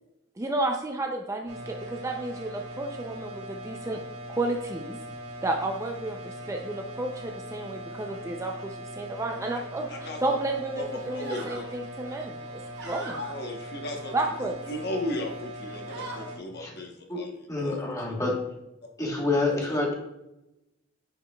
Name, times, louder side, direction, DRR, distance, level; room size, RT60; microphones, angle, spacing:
voice 1, 0.4-4.0 4.3-5.0 5.4-13.2 14.1-14.5, right 2 dB, 15° right, 2 dB, 0.4 m, -32 dB
Machine buzzing, 1.5-16.4, equal, 85° right, 1.3 m, -40 dB
voice 2, 9.9-10.4 10.8-11.7 13.2-14.1 14.4-17.3 17.6-18.1 19.7-19.8, left 1 dB, 55° left, 2 dB, 1.1 m, -36 dB
sound 1, 10.2-10.5 10.9-11.7 12.1-13.4 13.9-14.8 15.2-15.4 15.7-16.3, right 1 dB, 60° right, 1.3 m, -41 dB
voice 3, 17.1-18.5 19.0-19.9, left 2 dB, 15° left, -1 dB, 1.2 m, -28 dB
8.6 x 5.0 x 2.3 m, 0.93 s
head